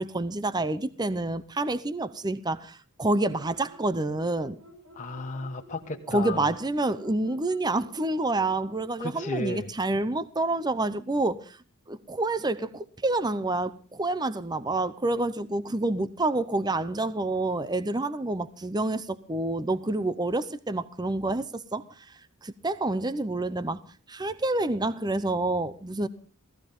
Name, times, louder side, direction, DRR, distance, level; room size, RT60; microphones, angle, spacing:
voice 1, 0.0-4.6 6.1-11.6 11.9-23.8 24.1-26.1, right 2 dB, 20° right, 0.7 m, -28 dB
sound 1, 3.0-8.9, equal, 90° right, 7.5 m, -51 dB
voice 2, 4.9-6.5 9.0-9.7, left 2 dB, 35° left, 1.3 m, -34 dB
18.0 x 15.0 x 5.3 m
head